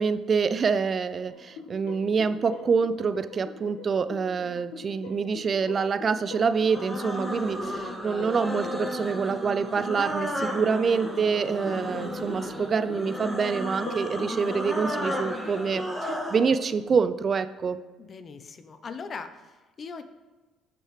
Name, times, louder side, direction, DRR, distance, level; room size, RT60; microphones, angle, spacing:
voice 1, 0.0-17.8, right 5 dB, 45° right, 12 dB, 0.4 m, -26 dB
sound 1, 1.3-16.8, left 3 dB, 80° left, 1.5 m, -44 dB
sound 2, 6.5-16.5, equal, 10° left, 1.9 m, -33 dB
voice 2, 18.0-20.0, left 5 dB, 45° left, 10 dB, 0.8 m, -40 dB
12.0 x 6.2 x 3.2 m, 1.2 s
hypercardioid pair, 60°, 0 cm